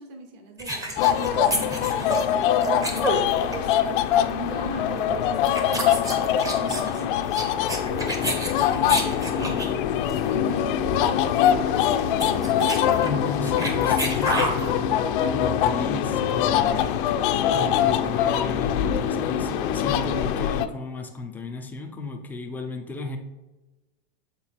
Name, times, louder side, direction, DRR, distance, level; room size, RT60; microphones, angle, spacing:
voice 1, 0.0-9.9 10.3-12.4, right 2 dB, 35° right, 5 dB, 1.0 m, -40 dB
sound 1, 0.6-3.7 4.0-4.2 5.0-5.1 5.4-9.8 10.1-10.3 10.5-10.6 10.8-11.0 11.3-11.4 11.9-14.7, right 1 dB, 10° right, 0.8 m, -29 dB
sound 2, 1.0-20.7, left 9 dB, 55° left, 0.6 m, -23 dB
voice 2, 13.0-16.9 17.5-23.2, left 3 dB, 5° left, 2 dB, 0.4 m, -34 dB
7.5 x 3.8 x 4.5 m, 1.1 s
supercardioid pair, 145°, 31 cm